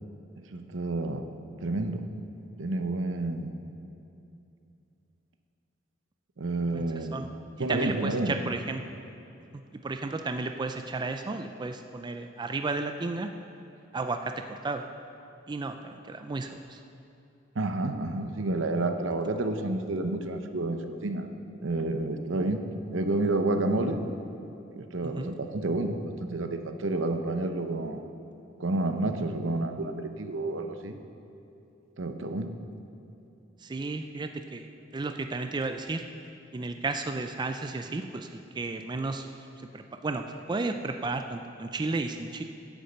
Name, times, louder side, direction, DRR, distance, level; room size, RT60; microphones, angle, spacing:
voice 1, 0.5-1.2 1.6-2.1 2.6-3.5 6.4-7.2 7.6-8.4 17.5-21.3 21.6-22.6 22.9-24.1 24.7-28.0 28.6-31.0 32.0-32.5, right 2 dB, 70° right, 7 dB, 0.8 m, -29 dB
voice 2, 6.7-7.3 7.7-8.8 9.5-13.3 13.9-14.9 15.5-16.8 25.0-25.3 33.6-34.7 34.9-36.0 36.5-39.3 39.7-42.4, right 3 dB, 25° right, 6 dB, 0.4 m, -33 dB
10.0 x 8.4 x 6.7 m, 2.8 s
head